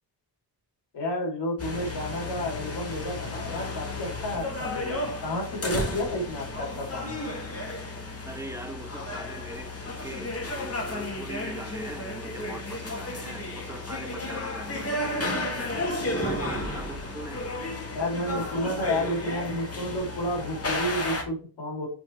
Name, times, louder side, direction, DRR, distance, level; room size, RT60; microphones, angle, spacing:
voice 1, 0.9-7.1 17.9-21.9, left 1 dB, 85° left, 0 dB, 3.3 m, -31 dB
sound 1, 1.6-21.2, left 2 dB, 35° left, 2.2 m, -33 dB
voice 2, 8.2-15.7 16.1-17.4, right 1 dB, 5° right, 4 dB, 1.1 m, -41 dB
6.1 x 4.4 x 4.5 m, 0.38 s
cardioid pair, 85°, 41 cm